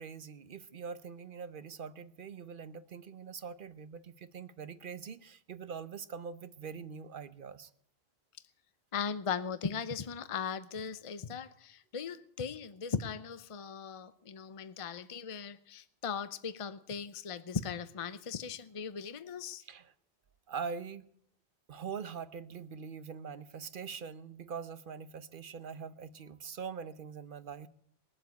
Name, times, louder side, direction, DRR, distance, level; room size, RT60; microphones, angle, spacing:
voice 1, 0.0-7.7 19.6-19.9 20.5-21.1 21.7-27.7, right 6 dB, 55° right, 1.0 m, -43 dB
voice 2, 8.9-19.6, left 6 dB, 35° left, 0.7 m, -38 dB
20.5 x 7.7 x 9.3 m
omnidirectional pair, 1.1 m